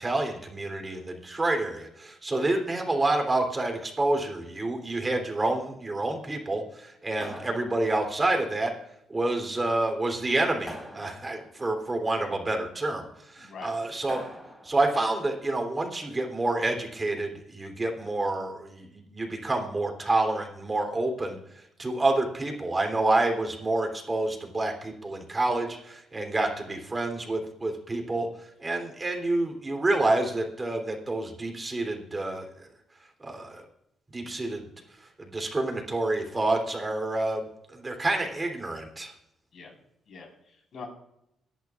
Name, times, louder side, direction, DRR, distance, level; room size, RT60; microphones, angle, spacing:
voice 1, 0.0-8.7 9.1-14.2 14.6-32.7 33.2-33.7 34.1-34.7 35.0-39.1, right 2 dB, 25° right, 3 dB, 3.4 m, -28 dB
sound 1, 7.2-8.3 10.7-11.6 14.1-14.9, equal, ahead, 4.8 m, -43 dB
voice 2, 13.4-13.7 26.6-26.7 39.5-39.7 40.1-40.9, left 5 dB, 60° left, 1 dB, 4.8 m, -44 dB
23.0 x 11.0 x 2.5 m, 0.80 s
cardioid pair, 90°, 0 cm